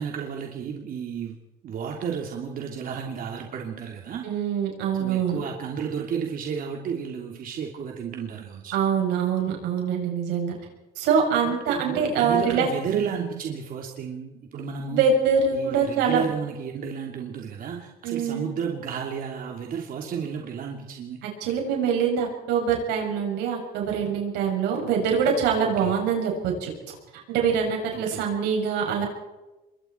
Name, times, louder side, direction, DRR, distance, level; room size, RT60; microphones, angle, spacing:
voice 1, 0.0-1.4 1.6-4.2 5.0-8.8 11.4-15.1 15.5-21.2 25.8-26.0 27.9-28.2, right 7 dB, 55° right, 1 dB, 2.9 m, -32 dB
voice 2, 4.2-5.4 8.7-10.6 11.0-12.7 14.9-16.3 18.0-18.5 21.2-26.7 27.3-29.0, right 6 dB, 90° right, 1 dB, 7.5 m, -24 dB
26.5 x 23.0 x 4.5 m, 1.0 s
cardioid pair, 110°, 17 cm